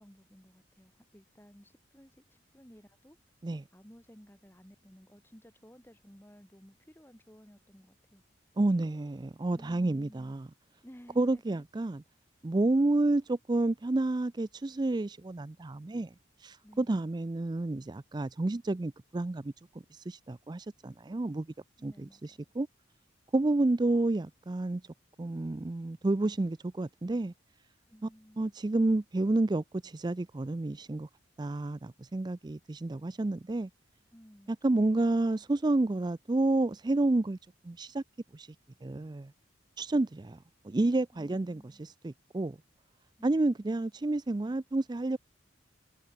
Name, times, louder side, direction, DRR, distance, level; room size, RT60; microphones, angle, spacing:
voice 1, 0.0-3.2 3.7-8.2 9.5-10.4 10.8-11.7 16.6-17.1 21.8-22.4 27.9-28.5 34.1-34.9 41.1-41.8 43.2-43.5, equal, 10° left, 3.2 m, -56 dB
voice 2, 8.6-10.5 11.2-12.0 12.4-16.1 16.4-19.5 19.9-21.5 21.8-22.7 23.3-24.8 25.2-27.3 28.4-31.1 31.4-33.7 34.6-37.4 37.6-38.0 38.3-38.5 38.8-39.3 39.8-40.4 40.6-42.6 43.2-45.2, right 2 dB, 20° right, 0.4 m, -30 dB
head